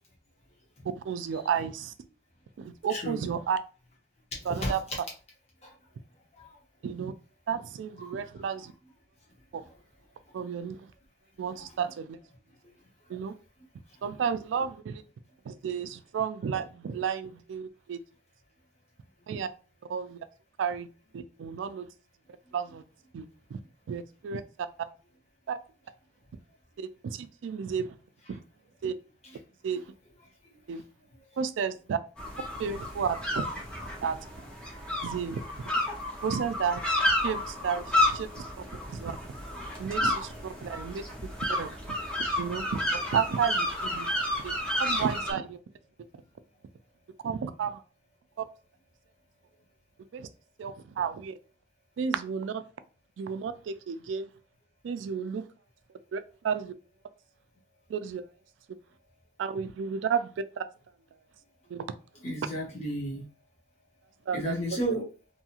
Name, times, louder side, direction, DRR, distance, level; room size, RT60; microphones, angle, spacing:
voice 1, 1.0-1.9 2.6-3.6 4.4-4.8 6.8-7.1 7.5-8.7 9.5-9.6 10.3-10.9 11.4-12.2 13.1-13.3 14.0-15.0 15.5-18.0 19.3-19.5 19.9-20.2 20.6-20.9 21.1-21.9 22.5-22.8 23.1-23.3 23.5-23.6 23.9-24.7 25.5-25.6 26.8-28.0 28.3-28.4 28.8-28.9 29.6-29.9 30.7-30.8 31.4-32.0 32.6-33.4 34.0-34.2 35.0-35.4 36.2-36.8 37.2-38.4 38.9-39.2 39.8-41.0 41.4-41.8 42.4-44.1 44.4-44.5 44.8-45.6 47.2-47.8 48.4-48.5 50.1-50.3 50.6-51.4 52.0-52.6 53.2-54.3 54.8-55.5 56.1-56.7 57.9-58.2 59.4-60.7 61.7-61.9 64.3-64.6, right 7 dB, 85° right, 0.3 m, -32 dB
voice 2, 2.9-3.2 4.5-4.7 5.6-5.7 6.4-6.5 8.0-8.1 62.2-63.2 64.3-65.0, equal, 35° left, 1.0 m, -32 dB
sound 1, 32.2-45.3, left 1 dB, 5° left, 0.6 m, -31 dB
2.7 x 2.3 x 2.8 m
head